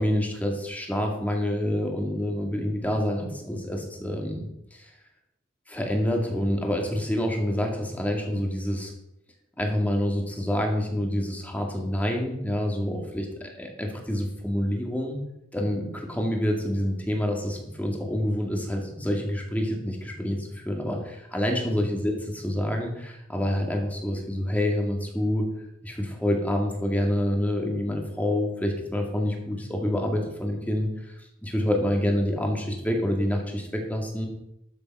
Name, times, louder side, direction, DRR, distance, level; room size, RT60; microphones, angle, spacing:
voice 1, 0.0-4.9 5.7-8.9 9.6-15.2 15.5-25.5 25.8-31.1 31.4-34.3, left 1 dB, 10° left, 1 dB, 2.1 m, -27 dB
12.5 x 7.0 x 5.5 m, 0.81 s
head